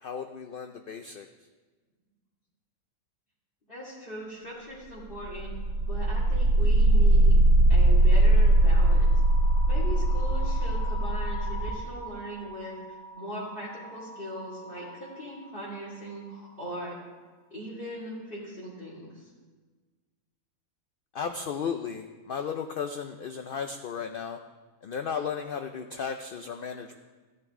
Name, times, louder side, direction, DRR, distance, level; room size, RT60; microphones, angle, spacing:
voice 1, 0.0-1.3 21.1-24.4 24.8-27.0, left 6 dB, 65° left, 7 dB, 0.5 m, -34 dB
voice 2, 3.7-5.5 5.8-7.4 7.7-9.1 9.7-12.7 13.2-17.0 17.5-19.1, right 1 dB, 40° left, -7 dB, 2.6 m, -39 dB
sound 1, 5.1-15.1, right 1 dB, 65° right, 1.3 m, -22 dB
13.5 x 10.5 x 3.6 m, 1.3 s
omnidirectional pair, 1.5 m